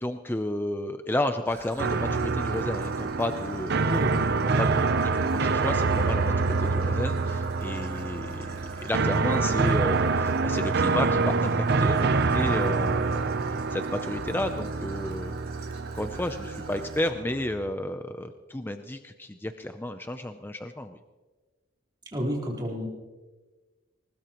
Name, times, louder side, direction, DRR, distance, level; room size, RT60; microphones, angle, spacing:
voice 1, 0.0-3.8 4.4-4.7 5.4-13.4 13.7-15.4 15.9-21.0, left 1 dB, 10° left, 7 dB, 0.5 m, -32 dB
Traffic noise roadway noise / Trickle dribble, 1.5-17.1, right 3 dB, 80° right, 2.9 m, -47 dB
sound 1, 1.8-17.7, right 4 dB, 50° right, 0.7 m, -26 dB
voice 2, 3.8-4.1 4.7-4.8 22.1-22.9, equal, 20° right, -4 dB, 4.1 m, -30 dB
21.0 x 19.5 x 3.0 m, 1.2 s
head